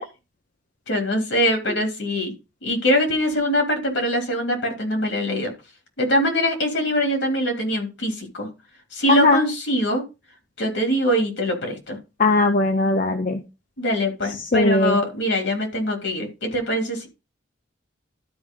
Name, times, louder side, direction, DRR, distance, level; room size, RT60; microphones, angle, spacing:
voice 1, 0.9-2.3 2.6-5.5 6.0-8.5 8.9-10.0 10.6-12.0 13.8-17.1, equal, 75° left, 3 dB, 3.0 m, -23 dB
voice 2, 9.1-9.4 12.2-13.4 14.5-15.0, left 2 dB, 45° left, 6 dB, 0.7 m, -18 dB
12.5 x 4.8 x 3.7 m, 0.27 s
head